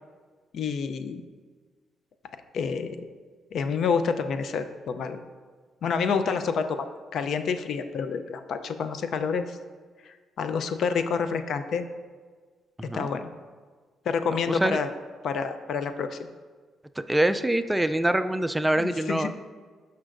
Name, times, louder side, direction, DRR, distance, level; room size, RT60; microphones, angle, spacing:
voice 1, 0.5-1.2 2.5-3.0 3.5-5.2 5.8-6.9 7.1-9.6 10.0-11.9 12.9-13.3 14.1-14.9 15.2-16.2 18.8-19.3, left 5 dB, 65° left, 9 dB, 0.5 m, -28 dB
voice 2, 14.5-14.8 17.0-19.3, right 1 dB, 10° right, 10 dB, 0.3 m, -25 dB
12.0 x 5.6 x 2.5 m, 1.5 s
cardioid pair, 90°, 0 cm